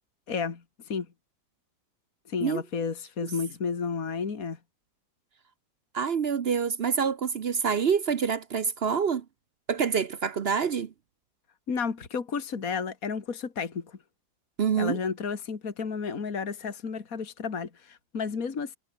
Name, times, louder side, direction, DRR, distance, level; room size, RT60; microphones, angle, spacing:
voice 1, 0.3-1.1 2.3-4.6 11.7-14.0 14.8-18.8, left 5 dB, 60° left, 2.6 m, -32 dB
voice 2, 5.9-9.2 9.7-10.9 14.6-15.0, right 6 dB, 50° right, 0.8 m, -26 dB
omnidirectional pair, 1.7 m